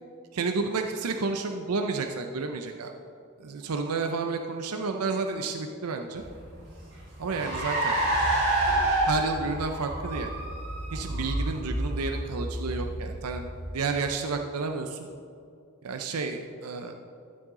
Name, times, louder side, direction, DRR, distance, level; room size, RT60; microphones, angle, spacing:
voice 1, 0.3-2.9 3.4-6.2 7.2-8.0 9.1-10.3 10.9-13.5 13.7-15.1 15.8-16.9, right 4 dB, 75° right, 5 dB, 0.6 m, -31 dB
Car, 6.2-14.0, right 1 dB, 45° right, 2.8 m, -29 dB
13.0 x 7.6 x 3.7 m, 2.4 s
head